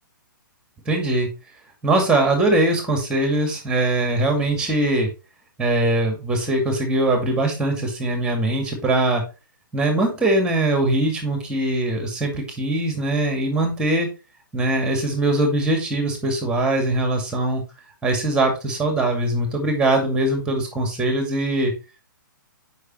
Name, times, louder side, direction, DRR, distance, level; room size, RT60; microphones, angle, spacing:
voice 1, 0.9-1.3 1.8-5.1 5.6-9.2 9.7-14.1 14.5-17.6 18.0-21.7, right 2 dB, 10° right, 3 dB, 2.1 m, -21 dB
6.4 x 5.5 x 3.2 m, 0.29 s
figure-of-eight pair, 125°, 11 cm